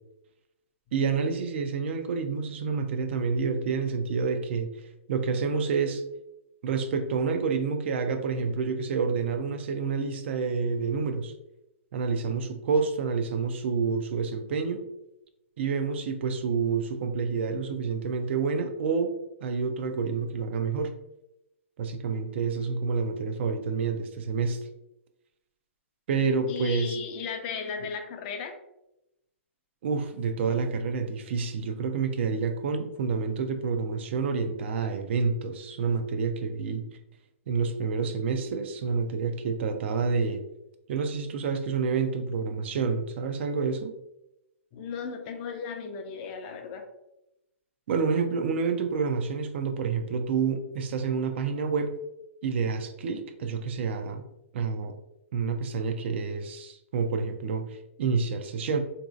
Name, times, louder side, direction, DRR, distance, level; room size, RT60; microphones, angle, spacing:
voice 1, 0.9-4.7 5.1-6.0 6.6-11.3 11.9-14.8 15.6-19.1 19.4-20.9 21.8-24.6 26.1-27.0 29.8-36.8 37.5-40.4 40.9-43.9 47.9-51.9 52.4-54.2 54.5-54.9 55.3-58.8, right 5 dB, 55° right, 6 dB, 0.4 m, -28 dB
voice 2, 26.5-28.5 44.7-46.8, left 6 dB, 40° left, 5 dB, 0.5 m, -35 dB
3.0 x 2.6 x 2.4 m, 0.87 s
hypercardioid pair, 125°, 7 cm